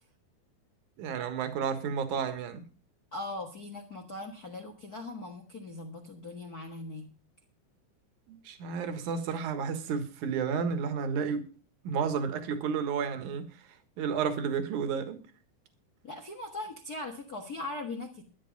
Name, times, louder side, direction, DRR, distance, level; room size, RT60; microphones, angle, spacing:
voice 1, 1.0-2.6 8.3-11.4 11.8-13.7 14.0-15.2, right 6 dB, 60° right, 2.7 m, -31 dB
voice 2, 3.1-7.1 16.0-18.2, left 2 dB, 55° left, 1.0 m, -40 dB
12.5 x 9.8 x 5.2 m
omnidirectional pair, 4.4 m